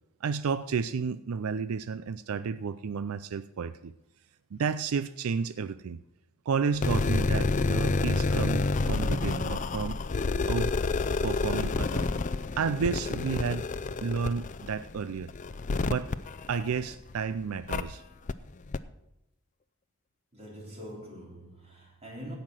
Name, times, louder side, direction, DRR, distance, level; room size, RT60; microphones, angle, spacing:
voice 1, 0.2-3.9 4.5-6.0 6.5-10.0 10.5-10.7 11.2-12.1 12.6-13.7 14.0-15.3 15.8-16.1 16.5-18.0, right 5 dB, 85° right, 0.4 m, -31 dB
sound 1, 6.7-17.1 17.7-17.8 18.3-18.4 18.7-18.8, left 3 dB, 35° left, 0.4 m, -29 dB
voice 2, 20.3-22.4, equal, 30° right, 3.5 m, -44 dB
16.5 x 5.8 x 6.3 m
head